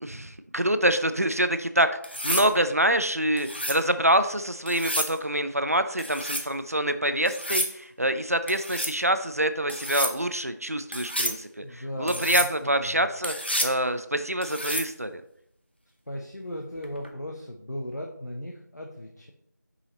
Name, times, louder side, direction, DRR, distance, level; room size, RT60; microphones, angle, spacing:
voice 1, 0.0-15.2, right 1 dB, 50° right, 10 dB, 0.5 m, -26 dB
sound 1, 2.0-2.5 3.4-3.8 4.7-5.1 6.0-6.5 7.3-7.7 8.5-9.0 9.7-10.1 10.9-11.4 12.1-12.5 13.2-13.8 14.4-14.9 16.8-17.1, equal, 35° left, 0.7 m, -30 dB
voice 2, 11.6-12.5 12.9-13.0 16.1-19.3, left 1 dB, 60° left, 1 dB, 1.0 m, -37 dB
5.6 x 5.6 x 4.0 m, 0.71 s
figure-of-eight pair, 180°, 10 cm